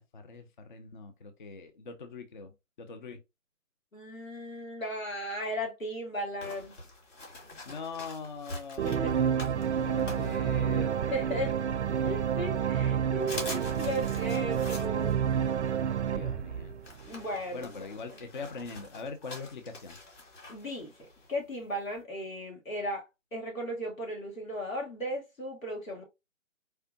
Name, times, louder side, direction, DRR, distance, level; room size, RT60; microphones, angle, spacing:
voice 1, 0.1-3.2 7.7-11.0 16.1-16.8 17.5-20.0, left 4 dB, 40° left, 0.5 m, -42 dB
voice 2, 3.9-6.7 8.8-9.1 11.1-11.6 12.0-15.2 17.1-17.9 20.5-20.9 21.3-23.0 23.3-26.0, equal, 90° left, 2.8 m, -36 dB
sound 1, 6.4-11.0 11.5-12.4 12.8-12.9 13.2-22.0, left 2 dB, 65° left, 2.6 m, -46 dB
sound 2, 8.8-17.2, right 8 dB, 60° right, 0.5 m, -29 dB
4.5 x 3.3 x 2.7 m
figure-of-eight pair, 150°, 39 cm